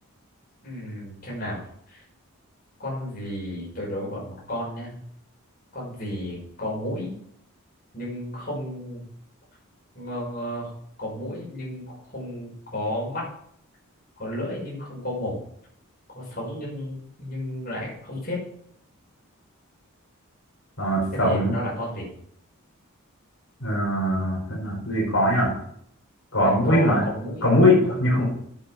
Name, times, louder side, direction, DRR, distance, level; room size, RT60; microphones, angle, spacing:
voice 1, 0.6-2.0 2.8-4.9 5.7-7.1 7.9-9.0 9.9-10.7 11.0-13.2 14.2-15.4 16.1-18.4 21.1-22.1 26.4-27.4 27.9-28.0, left 1 dB, 40° left, -5 dB, 6.0 m, -32 dB
voice 2, 20.8-21.5 23.6-25.5 26.3-27.0 27.4-28.2, left 1 dB, 60° left, -5 dB, 5.5 m, -21 dB
9.8 x 8.2 x 6.0 m, 0.67 s
head